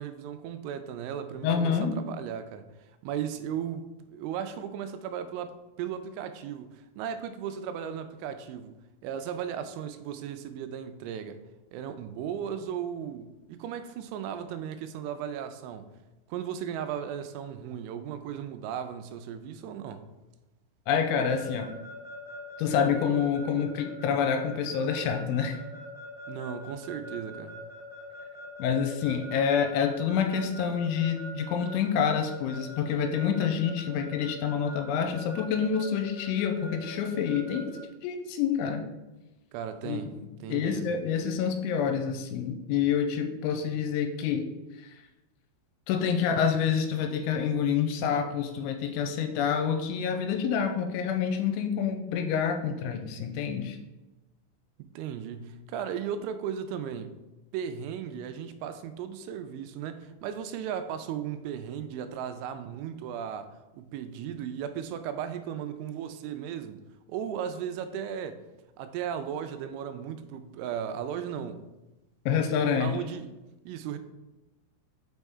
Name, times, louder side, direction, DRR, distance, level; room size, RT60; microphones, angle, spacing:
voice 1, 0.0-2.7 3.0-8.8 9.0-11.4 11.7-15.9 16.3-20.1 26.3-27.6 39.5-40.9 54.8-57.2 57.5-66.8 67.1-68.4 68.8-71.7 72.8-73.3 73.7-74.0, right 8 dB, 90° right, 9 dB, 3.0 m, -36 dB
voice 2, 1.4-1.9 20.9-21.7 22.6-25.6 28.6-37.7 38.0-38.8 39.8-40.0 40.5-44.5 44.8-45.0 45.9-53.8 72.3-73.0, left 7 dB, 85° left, 5 dB, 3.0 m, -27 dB
Keyboard (musical) / Alarm, 21.2-37.8, left 1 dB, 45° left, 2.0 m, -44 dB
6.1 x 5.5 x 3.5 m, 1.0 s
omnidirectional pair, 5.4 m